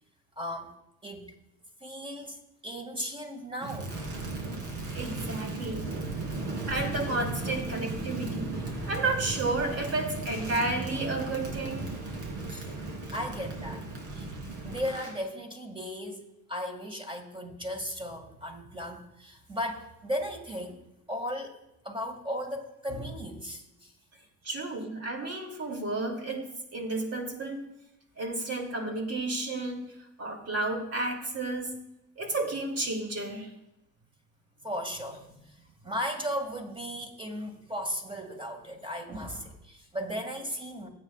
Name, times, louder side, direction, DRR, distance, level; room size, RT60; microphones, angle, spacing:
voice 1, 0.4-0.7 1.0-1.3 1.8-4.0 12.5-12.7 13.1-13.8 14.1-14.3 14.6-20.8 21.1-21.5 21.8-23.9 32.3-32.4 34.6-40.9, equal, 15° right, 3 dB, 2.2 m, -36 dB
Crackle, 3.6-15.2, right 3 dB, 80° right, 3.1 m, -36 dB
voice 2, 4.9-5.9 6.7-8.5 8.8-11.8 24.4-26.4 26.7-27.6 28.2-29.9 30.2-31.7 32.2-33.5, right 2 dB, 55° right, 2 dB, 2.9 m, -32 dB
17.5 x 8.4 x 2.5 m, 0.86 s
cardioid pair, 90°, 30 cm